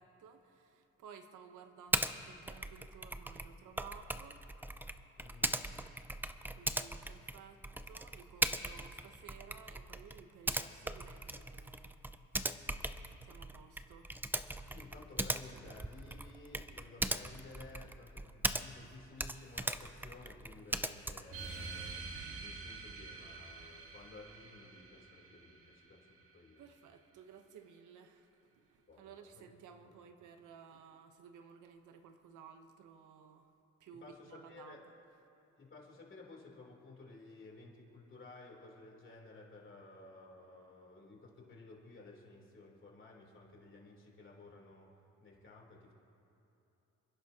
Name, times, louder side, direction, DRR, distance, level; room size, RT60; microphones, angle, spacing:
voice 1, 0.0-4.4 6.5-12.0 13.2-14.3 26.6-33.5 33.8-34.8, right 7 dB, 80° right, 7 dB, 1.0 m, -56 dB
Typing, 1.9-2.1 2.5-18.9 19.2-21.4, right 1 dB, 5° right, 0.5 m, -39 dB
voice 2, 5.2-5.6 14.7-26.6 28.9-29.5 29.8-29.9 34.0-34.8 35.6-44.9 45.2-45.9, left 3 dB, 40° left, -2 dB, 3.5 m, -55 dB
sound 1, 21.3-26.3, right 4 dB, 45° right, 1.6 m, -47 dB
29.5 x 10.5 x 2.9 m, 2.9 s
cardioid pair, 90°, 30 cm